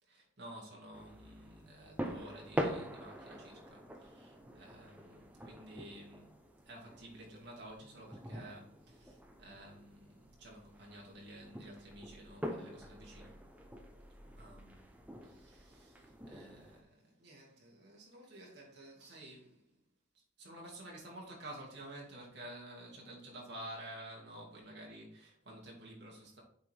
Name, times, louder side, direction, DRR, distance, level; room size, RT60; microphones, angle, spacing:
voice 1, 0.0-6.4 6.6-13.4 14.1-14.9 15.2-19.8 20.1-26.4, right 1 dB, 55° right, 2.5 m, -52 dB
sound 1, 0.9-16.8, equal, 10° right, 0.8 m, -45 dB
7.8 x 4.8 x 3.6 m
head